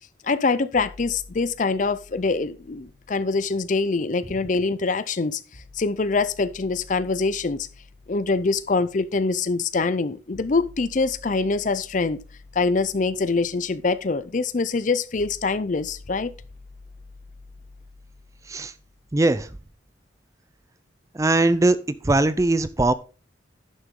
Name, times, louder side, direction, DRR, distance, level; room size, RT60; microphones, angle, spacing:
voice 1, 0.2-5.4 5.8-7.7 8.1-12.2 12.5-16.3, left 3 dB, 40° left, 0.5 m, -24 dB
sound 1, 0.7-4.7 5.5-19.6, left 3 dB, 70° left, 1.6 m, -50 dB
voice 2, 19.1-19.5 21.1-22.9, right 2 dB, 15° right, 0.4 m, -20 dB
11.0 x 6.7 x 3.7 m
head